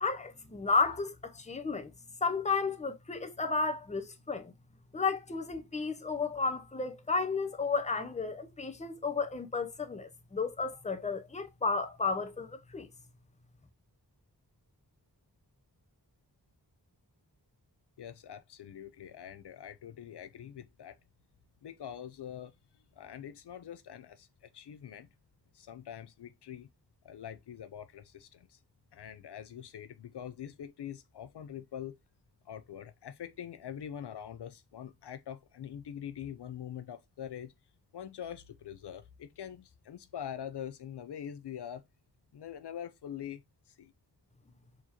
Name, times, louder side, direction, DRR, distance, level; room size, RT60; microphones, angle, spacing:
voice 1, 0.0-1.9 2.2-4.5 4.9-12.9, left 4 dB, 15° left, 0.6 m, -32 dB
voice 2, 18.0-21.0 21.6-25.1 25.5-26.7 27.0-28.6 28.9-32.0 32.5-37.5 37.9-41.8 42.3-43.4 43.7-43.9, left 9 dB, 75° left, 0.5 m, -44 dB
4.5 x 2.9 x 2.8 m
wide cardioid pair, 50°, 41 cm